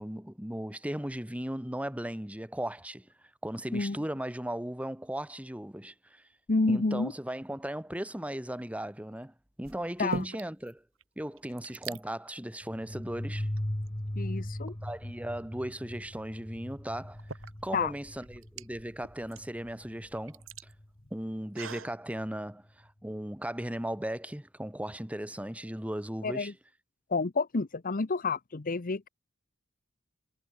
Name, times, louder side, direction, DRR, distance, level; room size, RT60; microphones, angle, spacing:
voice 1, 0.0-3.1 3.4-6.2 6.7-10.8 11.2-13.5 14.8-17.3 17.6-20.4 21.1-26.5, right 1 dB, 5° right, 1.7 m, -37 dB
voice 2, 6.5-7.1 10.0-10.2 14.2-14.7 17.7-17.9 26.2-26.5 27.1-29.1, left 3 dB, 45° left, 0.8 m, -29 dB
sound 1, 8.4-8.8 9.6-10.7 11.0-11.1 11.3-12.0 12.8-13.0 13.6-14.5 16.2-16.3 16.9-22.0, right 4 dB, 75° right, 1.9 m, -44 dB
sound 2, 12.6-21.0, left 1 dB, 20° left, 1.4 m, -39 dB
head